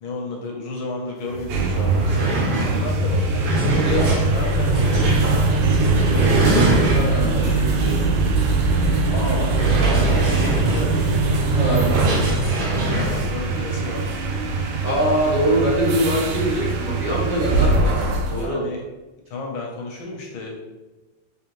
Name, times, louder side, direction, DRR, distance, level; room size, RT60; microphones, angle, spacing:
voice 1, 0.0-5.8 9.1-9.6 10.2-10.9 13.0-14.1 18.4-18.8 19.3-20.6, left 3 dB, 75° left, 0 dB, 1.5 m, -32 dB
sound 1, 1.3-1.4 1.7-7.4 7.9-8.0 8.4-8.5 9.4-13.3, right 2 dB, 60° right, 1.3 m, -25 dB
sound 2, 1.3-18.5, right 3 dB, 80° right, 1.5 m, -21 dB
voice 2, 3.8-4.1 6.9-8.1 11.5-11.9 14.8-18.6, right 1 dB, 25° right, -7 dB, 1.1 m, -23 dB
3.9 x 3.6 x 2.9 m, 1.1 s
omnidirectional pair, 2.4 m